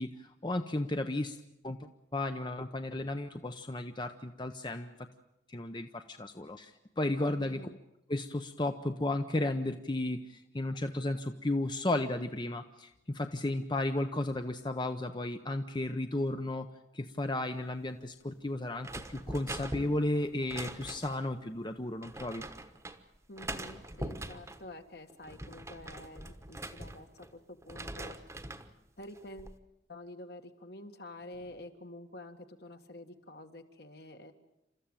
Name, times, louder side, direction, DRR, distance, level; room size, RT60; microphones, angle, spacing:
voice 1, 0.0-4.9 5.5-7.6 8.1-16.7 16.9-22.4, left 1 dB, 25° left, 7 dB, 0.8 m, -34 dB
voice 2, 7.4-7.8 23.3-28.2 29.0-29.6 29.9-34.3, left 1 dB, 55° left, 6 dB, 1.8 m, -48 dB
sound 1, 18.8-21.3 22.0-23.0 23.4-24.6 25.1-27.3 27.6-28.7 29.1-29.6, right 1 dB, 15° right, 1.2 m, -42 dB
29.0 x 14.0 x 9.0 m, 0.90 s
head